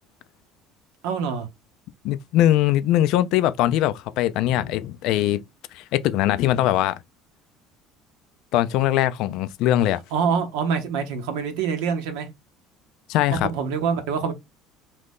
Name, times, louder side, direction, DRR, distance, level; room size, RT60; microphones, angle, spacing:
voice 1, 1.0-1.5 10.1-12.3 13.3-14.3, right 6 dB, 80° right, 0.8 m, -25 dB
voice 2, 2.0-5.4 5.7-7.0 8.5-10.0 13.1-13.5, left 13 dB, 70° left, 0.3 m, -21 dB
2.7 x 2.6 x 3.5 m
supercardioid pair, 80°, 0 cm